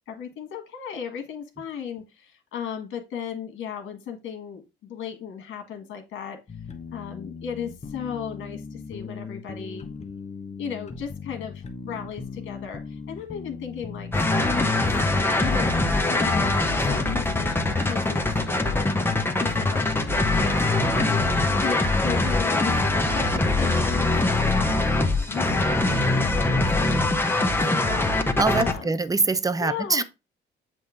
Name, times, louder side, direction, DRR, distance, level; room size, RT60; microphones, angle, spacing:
voice 1, 0.1-6.4 6.9-10.0 10.6-15.8 16.0-19.0 19.4-24.9 25.3-28.0 28.5-29.0 29.6-30.0, left 7 dB, 80° left, 1.5 m, -36 dB
sound 1, 6.5-25.2, left 5 dB, 35° left, 1.0 m, -38 dB
sound 2, 14.1-28.7, left 2 dB, 10° left, 1.0 m, -23 dB
voice 2, 28.4-30.0, right 3 dB, 20° right, 0.6 m, -24 dB
7.7 x 2.7 x 5.0 m
cardioid pair, 90°, 20 cm